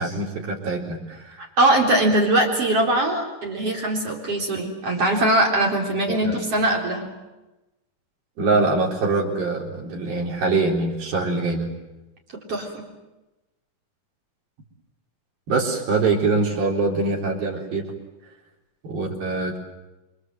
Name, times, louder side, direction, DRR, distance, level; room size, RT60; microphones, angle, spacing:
voice 1, 0.0-1.4 6.2-6.4 8.4-11.7 15.5-17.9 18.8-19.6, right 3 dB, 90° right, -1 dB, 5.8 m, -23 dB
voice 2, 1.4-7.1 12.3-12.9, right 1 dB, 40° right, 0 dB, 4.8 m, -21 dB
28.0 x 24.0 x 7.9 m, 1.0 s
omnidirectional pair, 4.1 m